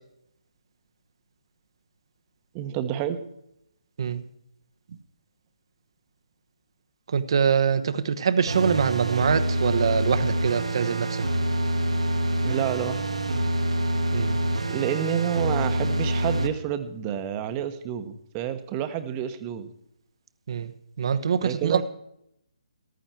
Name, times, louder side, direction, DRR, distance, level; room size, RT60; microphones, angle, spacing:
voice 1, 2.5-3.2 12.4-13.0 14.7-19.7 21.4-21.8, right 10 dB, 25° right, 9 dB, 1.2 m, -29 dB
voice 2, 7.1-11.2 14.1-14.4 20.5-20.7 21.0-21.8, right 7 dB, 50° right, 12 dB, 1.0 m, -24 dB
sound 1, 8.5-16.5, right 1 dB, 75° right, 1.7 m, -26 dB
14.5 x 12.5 x 4.5 m, 0.77 s
figure-of-eight pair, 145°, 3 cm